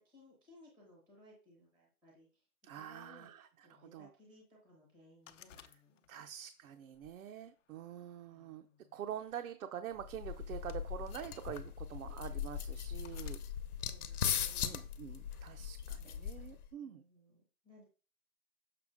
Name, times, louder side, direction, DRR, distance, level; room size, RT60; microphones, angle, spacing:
voice 1, 0.0-2.5 2.7-3.3 3.6-6.3 8.3-9.0 13.8-15.1 15.8-16.1 16.8-17.9, left 1 dB, ahead, -2 dB, 0.7 m, -62 dB
voice 2, 2.6-4.1 6.1-8.7 8.9-13.4 14.1-17.0, right 9 dB, 65° right, 7 dB, 0.7 m, -46 dB
sound 1, 5.3-6.3 6.9-8.1 9.1-9.3 10.4-11.4 12.1-12.2 13.0-13.5 14.4-14.8, left 8 dB, 55° left, 0.7 m, -57 dB
sound 2, 10.0-16.7, left 8 dB, 80° left, 1.0 m, -39 dB
6.8 x 5.6 x 3.6 m, 0.37 s
hypercardioid pair, 170°, 45 cm